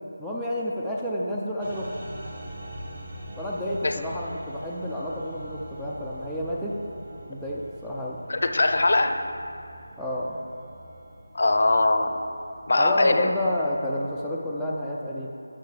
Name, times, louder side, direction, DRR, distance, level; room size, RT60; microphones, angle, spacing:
voice 1, 0.2-1.9 3.4-6.7 7.2-8.2 10.0-10.4 12.8-15.3, left 1 dB, ahead, -8 dB, 0.3 m, -30 dB
sound 1, 1.6-14.2, equal, 30° right, 1.3 m, -43 dB
voice 2, 8.3-9.2 11.3-12.2 12.7-13.3, left 2 dB, 50° left, 7 dB, 0.5 m, -21 dB
12.5 x 6.3 x 3.3 m, 2.5 s
figure-of-eight pair, 175°, 0 cm